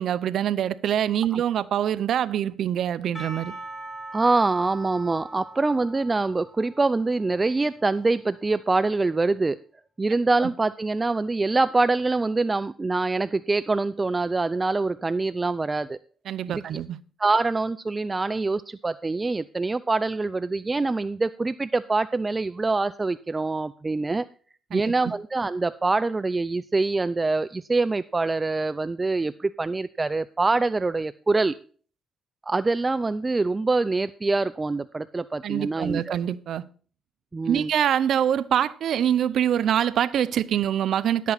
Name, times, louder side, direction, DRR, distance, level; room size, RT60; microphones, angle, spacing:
voice 1, 0.0-3.5 10.4-10.5 16.3-17.0 24.7-25.1 35.4-36.6 37.5-41.3, right 10 dB, 70° right, 0.6 m, -25 dB
Percussion / Church bell, 3.1-8.4, right 2 dB, 15° left, 3.6 m, -42 dB
voice 2, 4.1-9.6 10.0-16.0 17.2-24.3 24.7-31.6 32.5-36.2 37.3-37.7, right 3 dB, 25° right, 0.4 m, -25 dB
11.5 x 8.4 x 4.1 m
cardioid pair, 90°, 0 cm